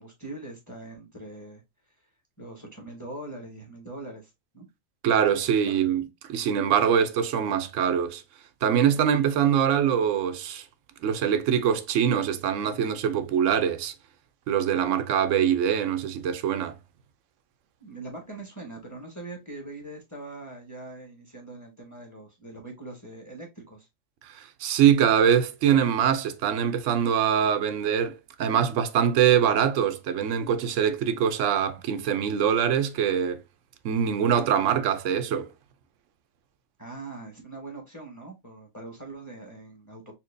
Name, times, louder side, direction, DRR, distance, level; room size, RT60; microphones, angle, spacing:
voice 1, 0.0-1.6 2.4-4.7 5.6-5.8 17.8-23.9 36.8-40.2, right 2 dB, 15° left, 1.2 m, -42 dB
voice 2, 5.0-8.2 8.6-10.6 11.0-13.9 14.5-16.8 24.2-33.4 33.8-35.5, right 8 dB, 75° right, 0.9 m, -23 dB
4.3 x 2.8 x 2.5 m
omnidirectional pair, 1.4 m